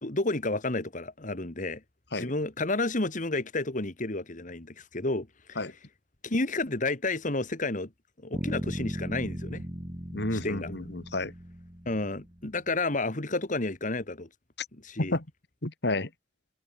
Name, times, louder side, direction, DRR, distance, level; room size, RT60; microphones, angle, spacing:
voice 1, 0.0-1.8 2.2-5.6 6.2-7.9 8.2-9.6 10.4-10.7 11.9-14.3 14.8-15.2, left 2 dB, 45° left, 2.0 m, -31 dB
sound 1, 8.3-12.4, equal, 20° right, 2.1 m, -37 dB
voice 2, 10.1-11.3 14.6-14.7 15.0-15.2 15.6-16.1, left 2 dB, 65° left, 2.9 m, -30 dB
head